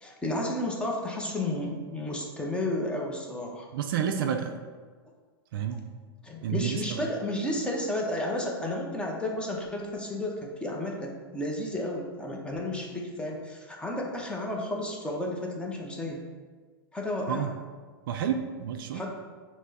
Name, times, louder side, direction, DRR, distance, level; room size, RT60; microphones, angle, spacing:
voice 1, 0.0-3.7 6.2-16.2 16.9-17.5 18.9-19.1, left 1 dB, 10° left, -1 dB, 0.6 m, -32 dB
voice 2, 3.7-4.6 5.5-5.8 6.4-7.1 17.3-17.5 18.1-19.0, right 8 dB, 60° right, 6 dB, 0.4 m, -30 dB
6.0 x 2.0 x 2.8 m, 1.5 s
hypercardioid pair, 115°, 13 cm